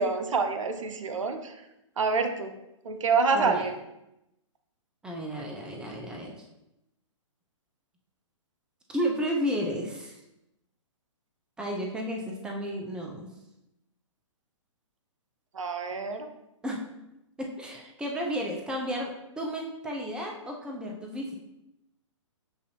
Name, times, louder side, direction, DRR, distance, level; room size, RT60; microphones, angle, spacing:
voice 1, 0.0-1.6 2.0-2.5 2.8-3.7 15.5-16.3, right 4 dB, 80° right, 7 dB, 0.6 m, -27 dB
voice 2, 3.3-3.7 5.0-6.4 8.9-10.2 11.6-13.3 16.6-16.8 17.4-21.3, equal, 5° right, 0 dB, 0.6 m, -32 dB
6.8 x 2.6 x 2.8 m, 0.89 s
hypercardioid pair, 125°, 16 cm